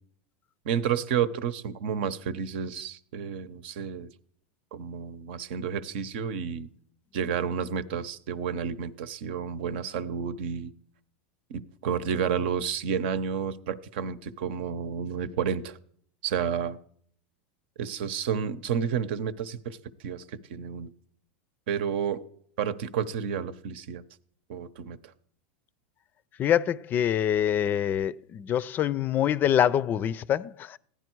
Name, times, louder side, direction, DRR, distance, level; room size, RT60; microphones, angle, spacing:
voice 1, 0.6-4.1 4.7-6.7 7.1-10.7 11.5-15.8 16.2-16.8 17.8-20.9 21.7-22.2 22.6-24.0 24.5-25.1, right 7 dB, 65° right, 0.9 m, -31 dB
voice 2, 26.4-30.8, left 10 dB, 30° left, 0.5 m, -25 dB
16.0 x 10.5 x 4.6 m
supercardioid pair, 125°, 6 cm